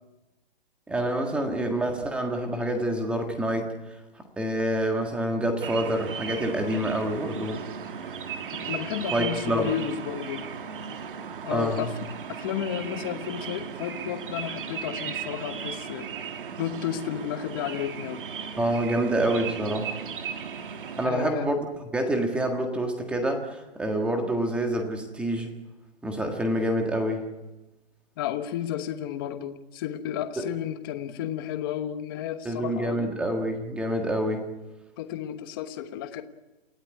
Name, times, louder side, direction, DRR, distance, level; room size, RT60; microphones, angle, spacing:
voice 1, 0.9-3.7 4.4-7.6 9.1-9.7 11.5-11.9 18.6-19.9 21.0-25.5 26.0-27.2 30.4-30.5 32.4-34.4, right 1 dB, 5° right, 4 dB, 1.7 m, -27 dB
sound 1, 5.6-21.1, right 7 dB, 55° right, 1.9 m, -36 dB
voice 2, 8.7-10.5 11.4-12.0 12.3-16.1 16.6-18.2 21.0-21.5 28.2-33.1 35.0-36.2, left 10 dB, 20° left, 9 dB, 1.1 m, -32 dB
28.5 x 16.5 x 9.8 m, 1.1 s
hypercardioid pair, 165°, 32 cm